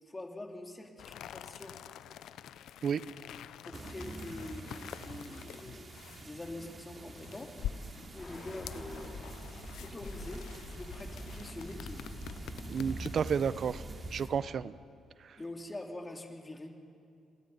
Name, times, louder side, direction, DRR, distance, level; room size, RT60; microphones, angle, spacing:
voice 1, 0.0-1.8 3.6-5.9 6.2-7.6 8.1-9.2 9.8-12.0 15.4-16.7, left 2 dB, 20° left, 2 dB, 2.8 m, -45 dB
sound 1, 1.0-13.4, left 10 dB, 80° left, 0.6 m, -47 dB
sound 2, 3.7-14.3, right 2 dB, 35° right, 2.8 m, -46 dB
Bird, 8.2-14.3, left 1 dB, 40° left, 5.4 m, -47 dB
voice 2, 12.7-13.8 14.1-14.7 15.2-15.4, right 7 dB, 55° right, 16 dB, 0.7 m, -31 dB
27.5 x 20.0 x 5.6 m, 2.5 s
cardioid pair, 90°, 0 cm